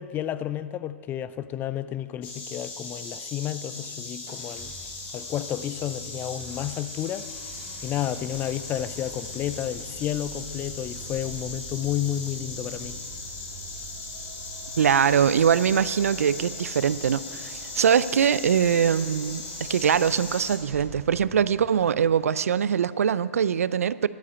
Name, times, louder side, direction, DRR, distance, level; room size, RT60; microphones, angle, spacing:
voice 1, 0.0-4.7 5.1-7.3 7.8-13.0, left 11 dB, 25° left, 0.4 m, -31 dB
Insect, 2.2-20.6, left 3 dB, 50° left, 2.9 m, -38 dB
sound 1, 4.2-22.7, right 4 dB, 35° right, 3.0 m, -46 dB
voice 2, 14.8-24.1, right 8 dB, 80° right, 0.4 m, -22 dB
11.5 x 8.3 x 8.3 m
hypercardioid pair, 125°, 8 cm